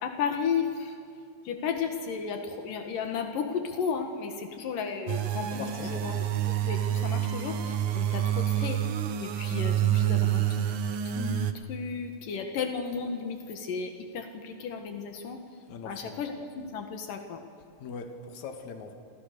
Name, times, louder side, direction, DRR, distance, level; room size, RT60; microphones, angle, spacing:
voice 1, 0.0-1.0 1.4-6.1 6.6-10.7 11.0-15.4 15.8-17.4, left 6 dB, 80° left, 5 dB, 3.2 m, -34 dB
sound 1, 5.1-11.5, right 11 dB, 65° right, 1.4 m, -28 dB
voice 2, 5.5-6.1 15.7-16.2 17.8-18.9, left 5 dB, 60° left, 5 dB, 3.1 m, -40 dB
29.0 x 27.0 x 6.8 m, 2.3 s
omnidirectional pair, 3.8 m